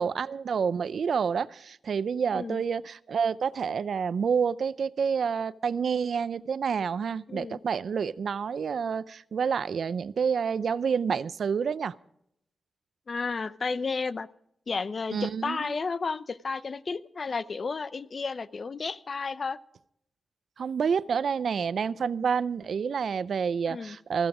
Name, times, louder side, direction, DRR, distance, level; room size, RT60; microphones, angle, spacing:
voice 1, 0.0-11.9 15.1-15.7 20.6-24.3, right 6 dB, 75° right, 18 dB, 0.5 m, -28 dB
voice 2, 2.3-2.6 7.3-7.6 13.1-14.3 14.7-19.6 23.7-24.0, left 4 dB, 50° left, 16 dB, 0.7 m, -32 dB
15.0 x 14.0 x 4.9 m, 0.73 s
cardioid pair, 85°, 0 cm